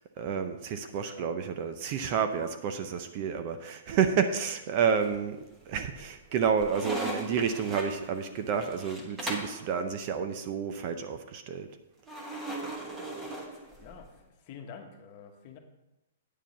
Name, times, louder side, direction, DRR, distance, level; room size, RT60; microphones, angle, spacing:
voice 1, 0.0-11.8, right 7 dB, 30° right, 8 dB, 0.6 m, -30 dB
voice 2, 1.0-1.3 3.5-3.6 13.8-15.6, left 6 dB, 30° left, 4 dB, 1.2 m, -48 dB
sound 1, 4.9-5.5 5.9-9.6 12.1-14.1, right 1 dB, 10° right, 1.2 m, -38 dB
9.1 x 4.8 x 7.1 m, 0.93 s
hypercardioid pair, 170°, 0 cm